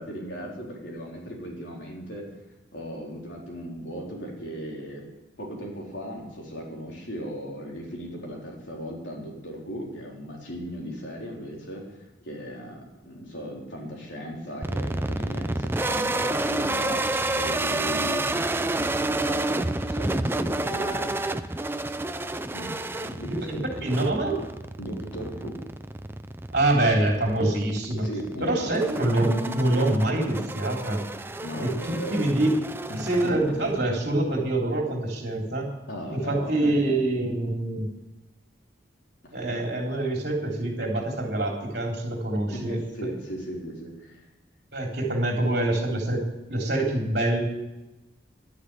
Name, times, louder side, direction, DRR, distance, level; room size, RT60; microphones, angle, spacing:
voice 1, 0.0-2.3 2.7-5.1 5.4-21.6 22.5-22.7 23.0-23.6 24.8-25.6 28.0-28.7 29.5-29.6 31.4-32.2 32.9-33.5 35.9-36.9 39.2-39.4 42.5-44.3, equal, 75° left, -2 dB, 4.0 m, -37 dB
sound 1, 14.6-33.8, right 2 dB, 10° right, 0.4 m, -30 dB
voice 2, 23.5-24.3 26.5-28.1 28.4-31.0 31.6-32.5 32.9-35.7 36.1-37.9 39.3-43.1 44.7-46.2 46.5-47.4, right 1 dB, 55° right, 0 dB, 3.6 m, -25 dB
11.5 x 10.0 x 8.9 m, 0.98 s
head